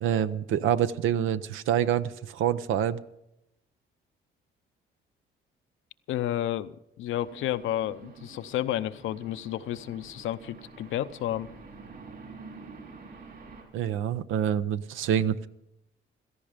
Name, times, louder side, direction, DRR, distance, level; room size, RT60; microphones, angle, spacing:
voice 1, 0.0-3.0 13.7-15.4, right 10 dB, 85° right, 13 dB, 0.7 m, -26 dB
voice 2, 6.1-11.5, left 12 dB, 80° left, 12 dB, 0.7 m, -31 dB
sound 1, 7.2-13.6, right 4 dB, 55° right, 5.6 m, -48 dB
16.5 x 14.0 x 5.1 m, 0.84 s
cardioid pair, 90°, 20 cm